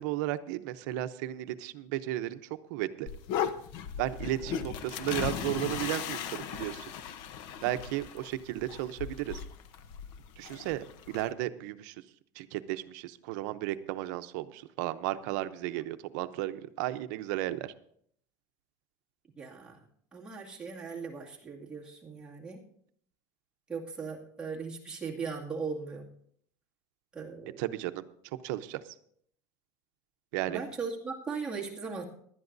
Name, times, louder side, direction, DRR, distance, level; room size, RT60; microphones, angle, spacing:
voice 1, 0.0-2.4 2.7-3.1 4.0-6.9 7.6-9.4 10.4-12.0 12.3-17.7 27.6-28.9 30.3-30.6, right 15 dB, 75° right, 11 dB, 0.7 m, -34 dB
sound 1, 3.1-11.3, left 8 dB, 60° left, 0.8 m, -37 dB
voice 2, 19.4-19.8 20.1-22.6 23.7-26.1 27.1-27.6 30.5-32.0, right 5 dB, 10° right, -4 dB, 2.2 m, -38 dB
19.0 x 11.5 x 2.6 m, 0.65 s
cardioid pair, 155°, 10 cm